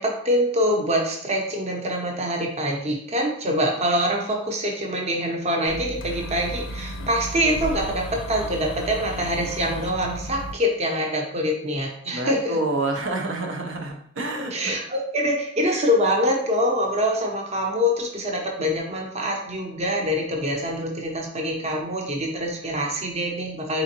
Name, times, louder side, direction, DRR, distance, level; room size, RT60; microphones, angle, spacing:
voice 1, 0.0-12.6 14.5-23.8, equal, 35° right, 1 dB, 0.7 m, -25 dB
sound 1, 5.7-10.5, left 1 dB, 80° left, 0.4 m, -34 dB
voice 2, 12.1-14.8, right 2 dB, 90° right, 2 dB, 0.7 m, -28 dB
3.9 x 3.7 x 2.9 m, 0.64 s
head